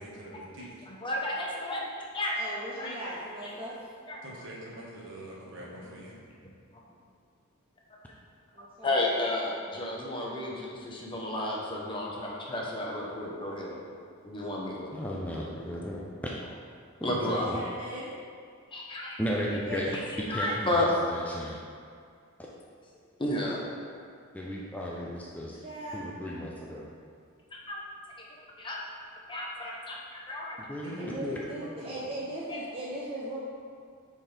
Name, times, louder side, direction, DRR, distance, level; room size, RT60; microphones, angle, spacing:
voice 1, 0.0-0.7 4.2-6.1 30.8-32.0, right 1 dB, 60° right, -5 dB, 1.5 m, -44 dB
voice 2, 0.9-1.9 2.1-2.5 2.8-3.1 4.1-4.2 8.8-13.8 14.2-14.9 17.0-17.5 18.7-19.2 20.3-20.9 23.2-23.7 27.7-27.8 28.6-28.8 29.3-30.6 32.5-32.6, left 1 dB, 25° left, -3 dB, 1.0 m, -32 dB
voice 3, 2.3-3.8 8.5-9.0 17.3-18.1 19.7-19.9 25.6-26.0 31.0-33.4, right 1 dB, 25° right, -6 dB, 0.7 m, -38 dB
voice 4, 14.9-16.0 17.1-17.6 19.2-19.9 20.3-21.6 24.3-25.6 25.9-26.9 30.6-31.4, equal, 5° left, -4 dB, 0.5 m, -35 dB
9.5 x 4.3 x 3.4 m, 2.2 s
head